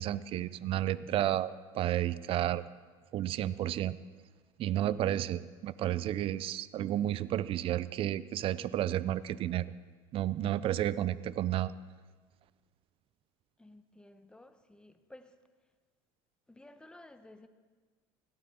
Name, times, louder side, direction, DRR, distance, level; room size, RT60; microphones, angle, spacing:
voice 1, 0.0-2.6 3.1-4.0 4.6-9.7 10.1-11.7, right 12 dB, 50° right, 0.5 m, -31 dB
voice 2, 13.6-15.3 16.5-17.5, left 1 dB, 5° left, 0.9 m, -54 dB
17.0 x 13.0 x 4.3 m
supercardioid pair, 110°, 12 cm